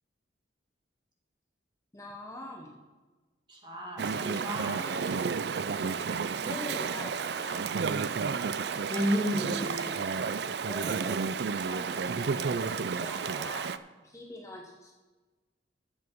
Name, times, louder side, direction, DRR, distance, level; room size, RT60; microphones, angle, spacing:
voice 1, 1.9-2.8 4.8-5.1 6.4-7.6 10.6-13.7 14.0-14.9, left 1 dB, 15° left, 0 dB, 1.1 m, -44 dB
voice 2, 3.5-4.8 8.9-10.0, equal, 25° right, -1 dB, 2.2 m, -32 dB
Chatter / Stream, 4.0-13.8, right 5 dB, 60° right, 0.4 m, -31 dB
14.0 x 7.2 x 4.6 m, 1.2 s
head